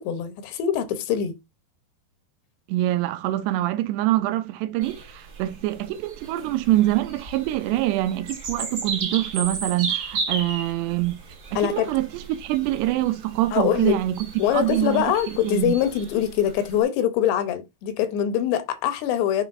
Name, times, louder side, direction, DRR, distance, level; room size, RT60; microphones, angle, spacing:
voice 1, 0.0-1.3 11.6-11.9 13.5-14.0 14.4-19.4, left 10 dB, 85° left, 2.9 m, -23 dB
voice 2, 2.7-11.2 11.5-15.1 15.4-15.7, right 15 dB, 90° right, 2.8 m, -25 dB
sound 1, 4.8-16.8, right 5 dB, 45° right, 1.6 m, -35 dB
9.8 x 4.0 x 2.5 m
omnidirectional pair, 4.8 m